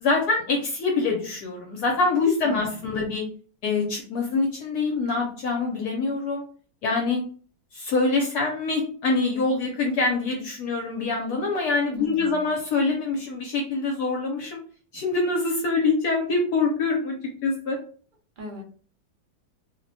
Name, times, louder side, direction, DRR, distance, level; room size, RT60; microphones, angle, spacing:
voice 1, 0.0-3.2 3.6-6.4 6.8-7.2 7.7-14.6 14.9-17.1 17.4-17.8, left 3 dB, 70° left, 1 dB, 1.0 m, -25 dB
voice 2, 2.4-3.1 11.9-12.5 18.4-18.6, left 2 dB, 65° right, 0 dB, 0.5 m, -39 dB
2.9 x 2.1 x 2.5 m, 0.43 s
omnidirectional pair, 1.9 m